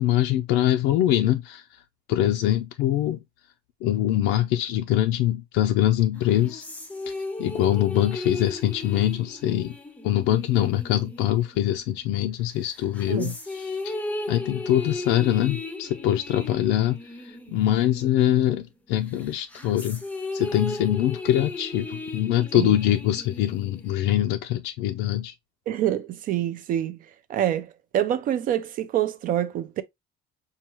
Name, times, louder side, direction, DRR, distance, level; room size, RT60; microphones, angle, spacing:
voice 1, 0.0-1.8 2.1-3.2 3.8-6.6 7.1-9.7 10.0-13.9 14.3-20.0 20.3-25.3, left 12 dB, 85° left, 0.5 m, -23 dB
sound 1, 6.1-12.1 12.6-18.6 19.0-24.1, left 2 dB, 5° left, 0.5 m, -36 dB
voice 2, 25.7-27.0 27.3-29.8, right 11 dB, 45° right, 0.4 m, -26 dB
5.5 x 2.3 x 3.0 m
cardioid pair, 165°, 20 cm